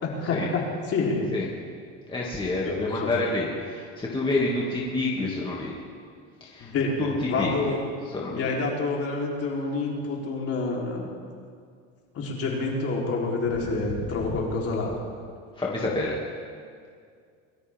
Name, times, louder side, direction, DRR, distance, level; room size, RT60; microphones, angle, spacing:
voice 1, 0.0-1.3 2.6-3.1 6.6-7.8 8.3-11.1 12.1-15.0, left 3 dB, 45° left, -3 dB, 4.0 m, -28 dB
voice 2, 2.1-5.7 6.4-7.7 8.1-8.5 15.6-16.2, left 2 dB, 15° left, -5 dB, 2.5 m, -28 dB
23.0 x 13.5 x 3.7 m, 2.2 s
supercardioid pair, 115°, 34 cm